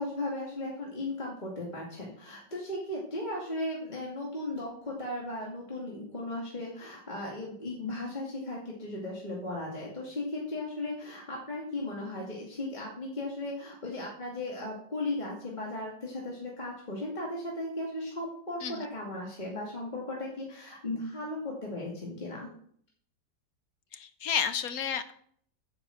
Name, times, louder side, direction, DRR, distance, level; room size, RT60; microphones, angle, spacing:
voice 1, 0.0-22.5, left 2 dB, 25° left, -3 dB, 2.4 m, -36 dB
voice 2, 23.9-25.1, left 7 dB, 60° left, 10 dB, 1.2 m, -31 dB
9.5 x 7.1 x 7.7 m, 0.63 s
omnidirectional pair, 1.9 m